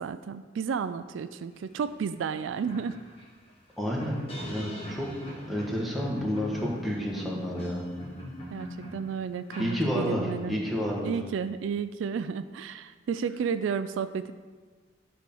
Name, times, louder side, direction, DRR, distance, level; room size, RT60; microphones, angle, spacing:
voice 1, 0.0-3.0 8.5-10.6 11.0-14.3, right 6 dB, 75° right, 12 dB, 0.3 m, -32 dB
sound 1, 1.9-2.0 2.3-10.4, equal, 30° left, 1.8 m, -42 dB
voice 2, 3.8-4.2 4.4-5.1 5.5-7.8 9.6-11.1, equal, ahead, -4 dB, 1.4 m, -30 dB
11.0 x 4.3 x 5.4 m, 1.5 s
head